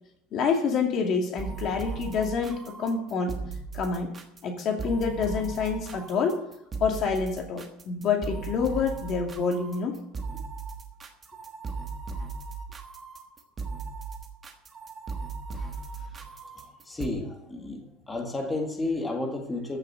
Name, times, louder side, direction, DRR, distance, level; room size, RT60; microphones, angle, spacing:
voice 1, 0.3-3.3 3.7-4.1 4.4-6.4 6.8-10.0 10.3-10.4, left 5 dB, 35° left, 3 dB, 2.3 m, -27 dB
sound 1, 1.4-17.1, right 4 dB, 20° right, 1.4 m, -37 dB
voice 2, 16.9-17.8 18.1-19.8, left 2 dB, 10° left, 2 dB, 1.8 m, -31 dB
15.0 x 6.6 x 7.9 m, 0.79 s
cardioid pair, 170°, 0 cm